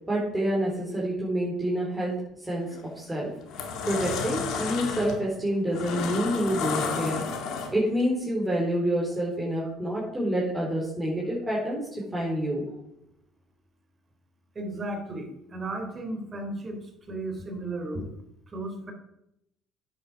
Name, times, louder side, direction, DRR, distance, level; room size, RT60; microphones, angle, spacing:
voice 1, 0.1-2.1 2.4-2.7 3.0-3.3 3.6-7.2 7.7-12.6, equal, 15° right, -5 dB, 4.5 m, -28 dB
sound 1, 2.6-2.9 3.3-8.0, left 5 dB, 70° left, 2.1 m, -32 dB
voice 2, 14.5-16.8 17.1-18.2 18.5-18.9, right 2 dB, 35° right, 3 dB, 3.5 m, -34 dB
9.8 x 8.1 x 6.4 m, 0.81 s
supercardioid pair, 80°, 0 cm